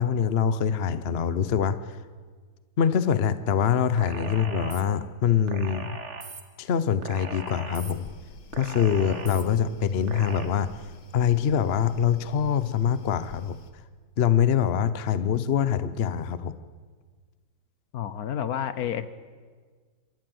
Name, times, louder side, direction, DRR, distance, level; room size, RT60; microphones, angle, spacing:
voice 1, 0.0-2.0 2.8-6.0 6.6-8.1 8.5-10.7 11.1-13.6 14.2-16.5, left 8 dB, 50° left, 14 dB, 0.8 m, -24 dB
sound 1, 4.0-4.8 5.5-6.4 7.0-7.9 8.5-9.4 10.1-10.5, right 4 dB, 45° right, 1.7 m, -38 dB
sound 2, 7.8-13.7, left 6 dB, 85° left, 2.0 m, -49 dB
voice 2, 17.9-19.1, left 9 dB, 65° left, 14 dB, 1.3 m, -30 dB
26.5 x 13.5 x 7.9 m, 1.5 s
omnidirectional pair, 1.8 m